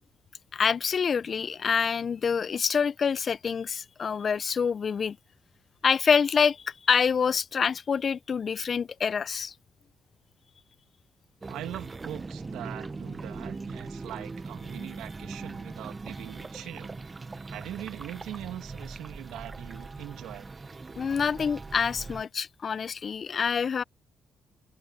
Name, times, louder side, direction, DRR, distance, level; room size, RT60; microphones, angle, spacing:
voice 1, 0.5-5.2 5.8-9.5 21.0-23.8, left 6 dB, 45° left, 0.4 m, -26 dB
sound 1, 11.4-22.2, right 3 dB, 25° right, 0.5 m, -40 dB
voice 2, 11.5-16.9 17.5-20.5, right 13 dB, 90° right, 1.6 m, -41 dB
cardioid pair, 90°, 0 cm